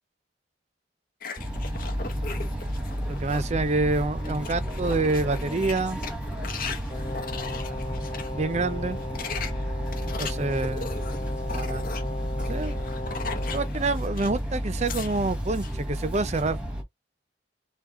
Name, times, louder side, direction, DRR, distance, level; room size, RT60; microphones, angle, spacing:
Small dog growling, 1.2-3.5 3.9-8.3 8.9-14.4 14.7-15.7, left 5 dB, 50° left, 1.0 m, -39 dB
sound 1, 1.4-16.8, equal, 5° right, 1.2 m, -32 dB
voice 1, 3.1-6.0 8.3-9.0 10.2-10.9 11.5-11.8 12.5-12.7 13.5-16.6, right 3 dB, 40° right, 0.6 m, -27 dB
Brass instrument, 6.9-13.8, left 2 dB, 35° left, 0.5 m, -37 dB
4.9 x 2.4 x 3.7 m
head